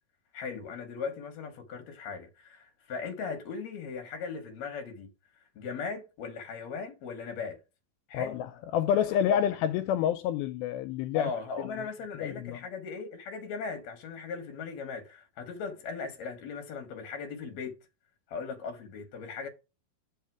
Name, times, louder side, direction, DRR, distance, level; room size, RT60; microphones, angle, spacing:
voice 1, 0.3-5.1 5.6-7.6 8.1-8.4 9.1-9.5 11.1-17.8 18.3-19.5, left 5 dB, 60° left, 2.1 m, -38 dB
voice 2, 8.1-11.3 11.6-11.9 12.2-12.6, left 9 dB, 85° left, 2.3 m, -28 dB
7.2 x 5.3 x 4.6 m
omnidirectional pair, 4.3 m